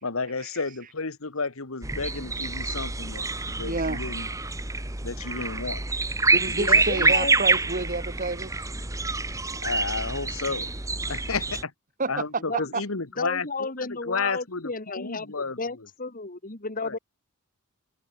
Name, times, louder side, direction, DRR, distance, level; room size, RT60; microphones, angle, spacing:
voice 1, 0.0-4.3 5.0-5.8 6.5-6.6 9.5-10.7 11.1-11.7 12.1-15.9 16.8-17.0, left 4 dB, 75° left, 1.7 m, -32 dB
sound 1, 1.8-11.6, right 3 dB, 15° right, 1.3 m, -26 dB
voice 2, 3.6-4.0 6.3-8.6 12.0-12.8, right 3 dB, 40° right, 1.7 m, -29 dB
voice 3, 6.5-7.4 12.5-12.7 13.2-17.0, left 3 dB, 40° left, 1.9 m, -33 dB
head